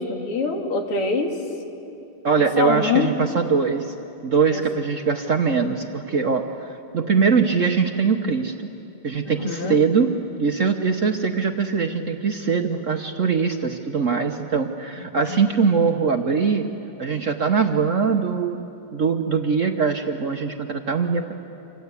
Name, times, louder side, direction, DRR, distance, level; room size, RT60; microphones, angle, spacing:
voice 1, 0.0-1.3 2.4-3.1 4.5-4.6 9.2-9.8 15.2-15.4, left 5 dB, 85° left, 3 dB, 3.1 m, -24 dB
voice 2, 2.2-3.9 4.2-6.7 6.9-8.5 9.0-10.1 10.4-16.7 17.0-18.6 18.9-21.3, right 5 dB, 50° right, 4 dB, 1.0 m, -22 dB
27.5 x 26.0 x 8.3 m, 2.9 s
omnidirectional pair, 2.4 m